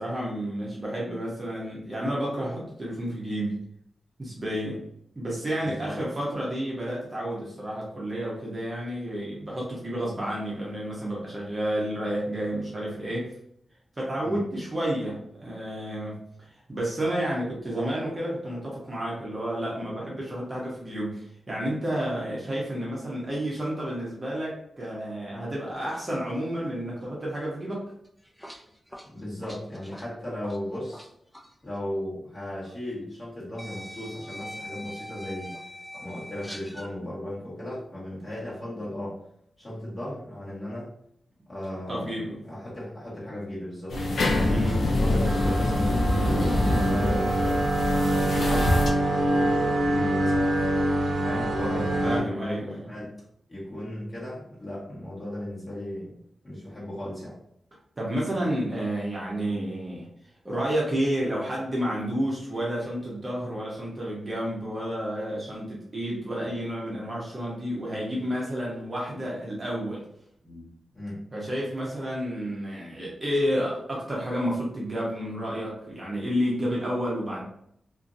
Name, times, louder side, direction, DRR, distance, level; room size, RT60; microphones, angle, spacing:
voice 1, 0.0-3.6 4.2-4.8 5.2-13.4 14.0-16.2 16.7-27.8 41.9-42.4 44.5-44.8 52.0-52.9 58.0-60.1 60.4-70.1 70.4-70.7 71.3-77.4, equal, 25° right, -5 dB, 0.9 m, -30 dB
voice 2, 5.6-6.0 14.2-14.4 29.0-31.1 31.6-35.6 35.9-39.2 39.6-40.9 41.5-47.6 48.2-50.7 51.1-53.2 53.5-56.2 56.4-57.4 70.9-71.2, left 1 dB, 20° left, -8 dB, 1.4 m, -36 dB
sound 1, 28.1-31.1 31.3-31.5 32.6-32.7 33.6-36.9, equal, ahead, 0.3 m, -42 dB
sound 2, 43.9-48.9, left 1 dB, 75° left, 0.5 m, -25 dB
sound 3, 43.9-52.2, right 1 dB, 75° right, 0.6 m, -26 dB
2.7 x 2.6 x 2.6 m, 0.70 s
wide cardioid pair, 105°, 0 cm